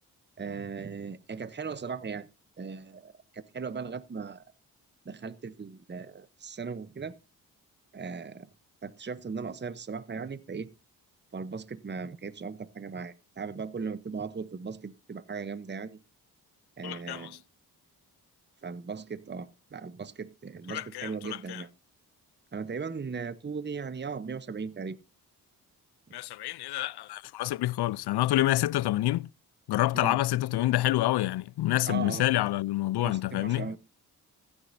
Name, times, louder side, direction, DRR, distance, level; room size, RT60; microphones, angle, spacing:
voice 1, 0.4-2.3 2.6-4.4 5.0-7.2 7.9-8.5 8.8-10.7 11.3-16.0 16.8-17.4 18.6-21.7 22.5-25.0 29.9-30.2 31.9-32.2 33.0-33.8, right 5 dB, 25° right, 0.9 m, -38 dB
voice 2, 16.8-17.4 20.7-21.6 26.1-29.3 29.7-33.7, left 15 dB, 65° left, 0.5 m, -28 dB
15.5 x 9.7 x 2.7 m
supercardioid pair, 45°, 42 cm